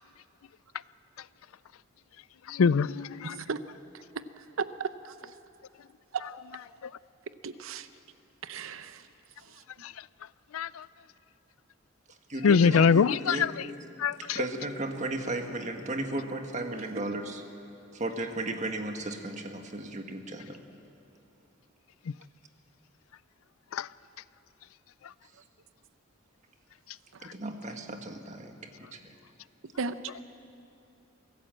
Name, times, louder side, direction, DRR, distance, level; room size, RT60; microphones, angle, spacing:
voice 1, 2.5-3.4 9.8-9.9 10.5-10.8 12.4-13.5 14.0-14.4 23.7-23.9, left 6 dB, 85° left, 0.4 m, -23 dB
voice 2, 4.6-5.1 7.4-7.9 8.4-9.0 29.8-30.0, right 4 dB, 75° right, 0.7 m, -34 dB
voice 3, 12.3-13.5 14.3-17.4 17.9-20.6 27.2-29.1, right 2 dB, 35° right, 1.6 m, -35 dB
24.5 x 16.5 x 7.7 m
head